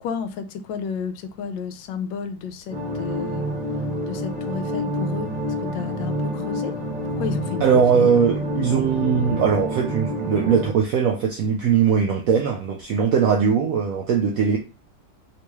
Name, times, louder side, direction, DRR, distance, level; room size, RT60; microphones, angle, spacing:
voice 1, 0.0-3.5 4.1-5.3 5.6-6.8 7.0-8.1, left 6 dB, 80° left, 1.3 m, -32 dB
sound 1, 2.7-10.7, equal, 40° right, 0.8 m, -28 dB
voice 2, 7.6-14.6, right 7 dB, 80° right, 0.7 m, -20 dB
3.9 x 3.0 x 2.3 m
omnidirectional pair, 2.0 m